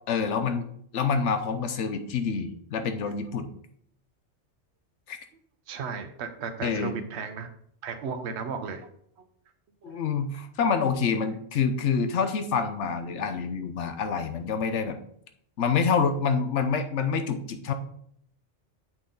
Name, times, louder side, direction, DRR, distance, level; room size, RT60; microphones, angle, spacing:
voice 1, 0.1-0.7 0.9-3.5 5.1-5.2 6.6-6.9 9.8-15.0 15.6-17.7, left 5 dB, 85° left, 8 dB, 1.1 m, -27 dB
voice 2, 5.7-7.5 7.8-8.9 9.2-9.3 9.8-10.1, right 5 dB, 70° right, 7 dB, 1.1 m, -35 dB
8.3 x 6.1 x 3.8 m, 0.66 s
omnidirectional pair, 1.2 m